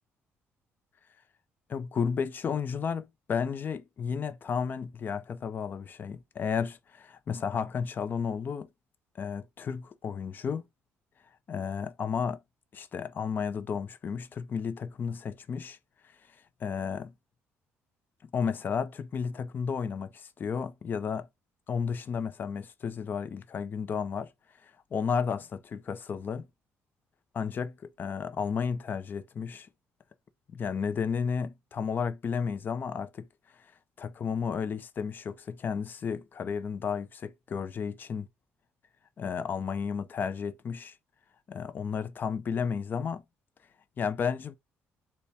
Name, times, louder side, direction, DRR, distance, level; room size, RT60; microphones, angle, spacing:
voice 1, 1.7-8.7 9.1-10.7 11.5-12.4 12.7-15.8 16.0-16.2 16.6-17.1 18.2-21.3 21.7-24.3 24.6-26.5 27.3-29.7 30.5-33.3 33.5-33.7 34.0-38.3 39.2-41.0 41.5-43.2 44.0-44.5, left 6 dB, 40° left, 0.5 m, -33 dB
4.1 x 2.2 x 3.4 m
cardioid pair, 115°, 5 cm